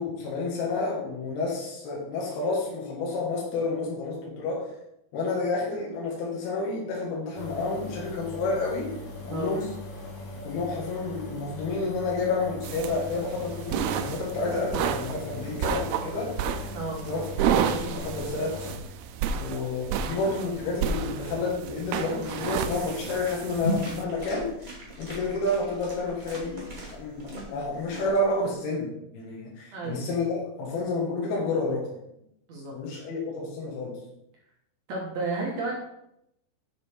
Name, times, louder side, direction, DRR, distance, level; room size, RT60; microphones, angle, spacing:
voice 1, 0.0-4.7 5.1-9.0 9.3-9.7 10.4-16.4 17.1-18.8 19.4-24.5 25.0-32.0 32.7-34.0, left 3 dB, 75° left, -2 dB, 3.3 m, -30 dB
sound 1, 7.3-18.8, left 2 dB, 55° left, 3.1 m, -40 dB
sound 2, 12.6-24.0, right 8 dB, 85° right, 2.5 m, -31 dB
sound 3, 22.2-28.5, equal, 15° right, 1.7 m, -37 dB
voice 2, 29.7-30.0 32.5-32.7 34.9-35.8, right 2 dB, 60° right, -2 dB, 2.0 m, -32 dB
7.6 x 6.7 x 4.5 m, 0.79 s
omnidirectional pair, 4.6 m